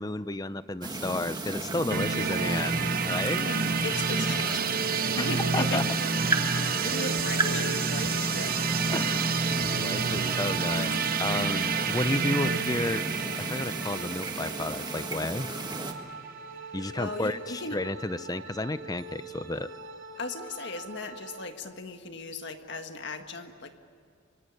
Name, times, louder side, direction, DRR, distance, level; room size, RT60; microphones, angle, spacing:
voice 1, 0.0-3.5 5.2-5.3 5.5-5.8 8.9-9.4 9.7-13.0 13.4-15.5 16.7-19.7, left 2 dB, 20° left, 14 dB, 0.6 m, -32 dB
sound 1, 0.8-15.9, right 2 dB, 20° right, 1.6 m, -34 dB
sound 2, 1.9-15.6, right 5 dB, 45° right, 1.0 m, -29 dB
voice 2, 3.4-4.9 5.2-5.9 6.3-8.7 17.0-17.8 20.2-23.8, left 3 dB, 55° left, 6 dB, 1.8 m, -37 dB
sound 3, 4.0-21.5, right 3 dB, 65° right, 2.3 m, -44 dB
24.5 x 24.0 x 9.9 m, 2.3 s
head